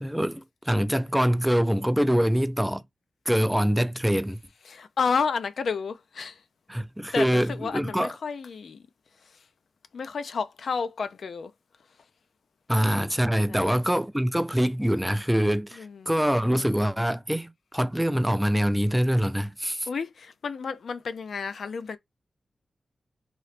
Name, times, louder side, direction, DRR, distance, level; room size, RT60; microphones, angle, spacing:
voice 1, 0.0-2.8 3.3-4.4 6.7-8.1 12.7-19.9, equal, 5° right, 0.3 m, -24 dB
voice 2, 4.7-6.4 7.1-8.8 9.9-11.5 13.5-13.7 15.8-16.0 19.9-22.0, left 5 dB, 75° left, 0.4 m, -31 dB
3.0 x 2.8 x 3.1 m
wide cardioid pair, 130°, 0 cm